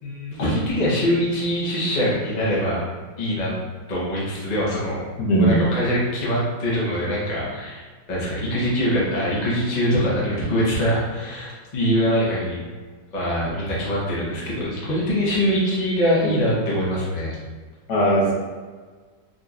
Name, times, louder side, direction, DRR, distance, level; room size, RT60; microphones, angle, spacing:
voice 1, 0.0-2.8 3.2-3.5 3.9-5.0 5.4-7.8 8.1-12.6 13.1-17.4, equal, 35° left, -6 dB, 0.7 m, -23 dB
voice 2, 5.2-5.6 16.2-16.3 17.9-18.3, right 1 dB, 70° left, -4 dB, 1.3 m, -18 dB
3.9 x 3.0 x 2.4 m, 1.5 s
omnidirectional pair, 1.9 m